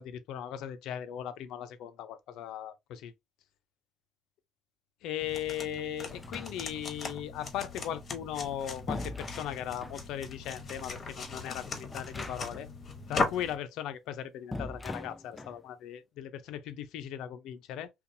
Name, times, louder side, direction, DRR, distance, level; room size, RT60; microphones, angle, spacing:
voice 1, 0.0-3.1 5.0-12.7 13.1-17.9, left 10 dB, 75° left, 0.4 m, -38 dB
sound 1, 5.2-13.6, left 3 dB, 40° left, 0.9 m, -38 dB
sound 2, 6.1-6.9 8.2-10.0 11.9-12.7 13.0-13.1 14.5-15.6, left 2 dB, 15° left, 0.4 m, -41 dB
2.6 x 2.3 x 2.6 m
supercardioid pair, 90°, 0 cm